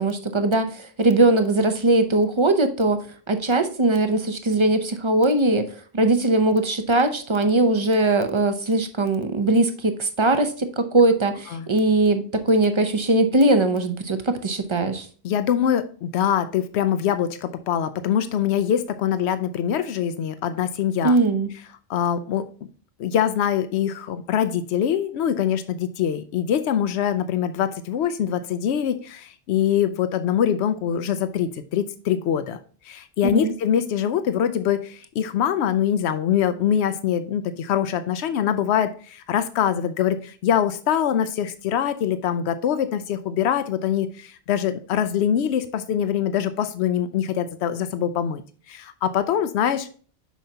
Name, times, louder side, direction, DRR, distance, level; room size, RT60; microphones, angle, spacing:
voice 1, 0.0-15.1 21.0-21.5 33.2-33.5, right 2 dB, 35° right, 8 dB, 0.6 m, -20 dB
voice 2, 15.2-21.2 21.9-22.4 23.0-32.6 32.8-48.4 48.7-49.9, left 9 dB, 90° left, 11 dB, 0.8 m, -23 dB
7.2 x 5.6 x 2.8 m, 0.42 s
omnidirectional pair, 1.1 m